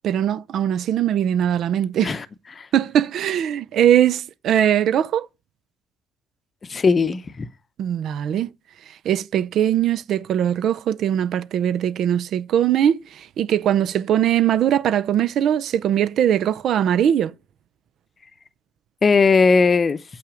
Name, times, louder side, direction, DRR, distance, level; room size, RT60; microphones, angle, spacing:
voice 1, 0.0-2.2 2.7-5.3 7.8-8.5 9.0-17.3, right 10 dB, 65° right, 0.5 m, -20 dB
voice 2, 6.7-7.5 19.0-20.0, left 4 dB, 30° left, 0.7 m, -18 dB
7.7 x 5.7 x 5.0 m
cardioid pair, 115°, 0 cm